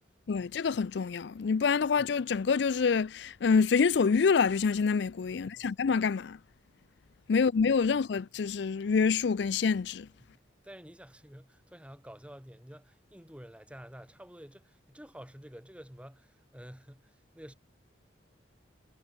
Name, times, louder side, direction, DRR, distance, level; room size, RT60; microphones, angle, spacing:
voice 1, 0.3-6.4 7.3-10.1, left 5 dB, 65° left, 0.4 m, -26 dB
voice 2, 5.3-5.7 7.3-7.4 10.6-17.5, equal, 5° right, 2.0 m, -50 dB
head